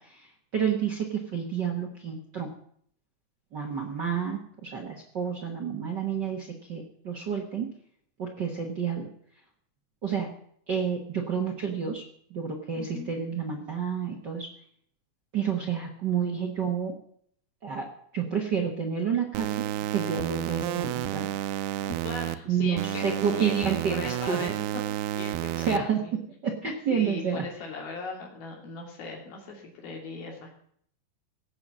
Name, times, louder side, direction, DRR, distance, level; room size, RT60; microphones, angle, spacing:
voice 1, 0.0-2.5 3.5-7.7 8.2-9.1 10.0-10.3 10.7-12.0 12.3-14.5 15.3-16.9 17.6-17.9 18.1-19.6 19.9-21.3 22.4-24.4 25.6-26.0 26.4-27.4, right 7 dB, 65° right, 1 dB, 1.0 m, -29 dB
voice 2, 12.8-13.1 21.8-24.6 25.1-26.2 26.6-30.6, left 4 dB, 75° left, 0 dB, 4.6 m, -39 dB
sound 1, 19.3-22.3 22.8-25.8, right 13 dB, 90° right, 2.6 m, -31 dB
17.0 x 6.9 x 7.5 m, 0.64 s
omnidirectional pair, 4.3 m